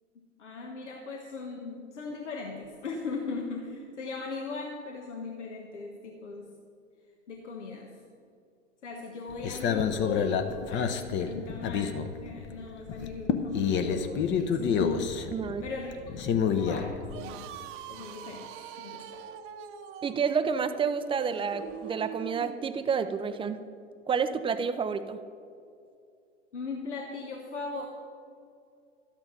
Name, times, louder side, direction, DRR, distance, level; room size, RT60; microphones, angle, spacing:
voice 1, 0.4-6.5 7.3-8.0 8.8-17.5 17.9-18.5 18.8-19.2 26.5-27.9, left 4 dB, 75° left, 1 dB, 1.4 m, -39 dB
sound 1, 9.3-12.6 12.9-17.1, left 7 dB, 30° left, 0.9 m, -28 dB
voice 2, 15.3-15.6 20.0-23.6 24.1-25.2, right 6 dB, 15° right, 10 dB, 0.5 m, -29 dB
sound 2, 17.0-22.6, right 9 dB, 35° right, 1.0 m, -43 dB
12.5 x 8.8 x 5.7 m, 2.5 s
figure-of-eight pair, 95°, 36 cm